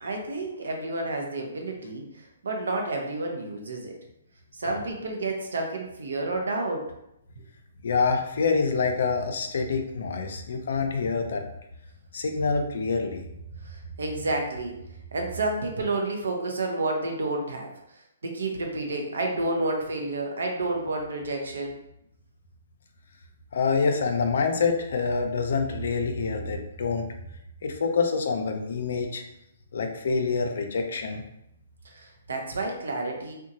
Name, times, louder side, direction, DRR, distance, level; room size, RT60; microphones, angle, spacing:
voice 1, 0.0-4.0 4.5-6.9 13.6-14.8 15.1-21.8 31.8-33.3, right 2 dB, 80° right, 2 dB, 0.6 m, -30 dB
voice 2, 7.8-11.4 12.1-13.2 23.5-27.1 27.6-29.2 29.7-31.2, left 4 dB, 70° left, 4 dB, 0.4 m, -26 dB
2.7 x 2.2 x 2.6 m, 0.81 s
hypercardioid pair, 135°, 0 cm